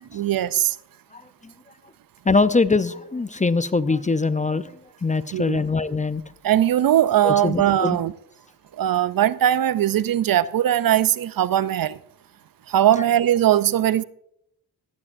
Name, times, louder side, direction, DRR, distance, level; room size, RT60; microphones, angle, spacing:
voice 1, 0.1-0.8 5.3-5.6 6.4-8.1 8.8-12.0 12.7-14.0, right 11 dB, 60° right, 0.5 m, -20 dB
voice 2, 2.3-4.7 5.0-6.2 7.2-8.0, left 3 dB, 20° left, 0.5 m, -22 dB
14.5 x 14.0 x 2.6 m
cardioid pair, 60°, 40 cm